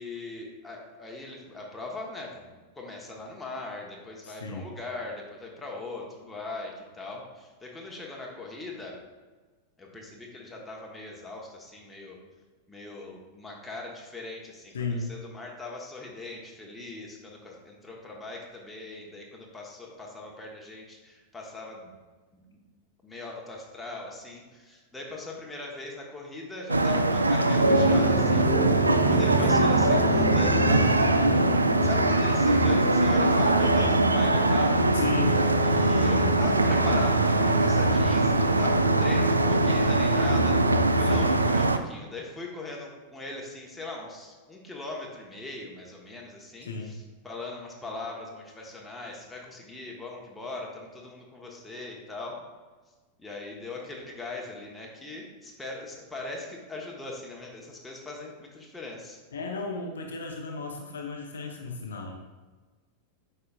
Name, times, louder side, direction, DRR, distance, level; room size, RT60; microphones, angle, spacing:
voice 1, 0.0-9.0 9.8-12.2 12.7-22.0 22.3-22.6 23.0-31.1 31.8-34.8 35.6-47.0 47.2-52.5 53.2-59.2, left 2 dB, 10° left, -2 dB, 1.3 m, -40 dB
voice 2, 4.2-4.7 14.7-15.1 34.9-35.9 36.1-36.3 41.0-41.3 46.6-47.0 59.3-62.2, left 3 dB, 65° left, 2 dB, 0.7 m, -34 dB
sound 1, 26.7-41.8, right 2 dB, 80° right, 0.3 m, -22 dB
sound 2, 27.5-41.4, equal, 35° right, 1.2 m, -29 dB
8.3 x 5.4 x 2.5 m, 1.3 s
figure-of-eight pair, 90°, 0 cm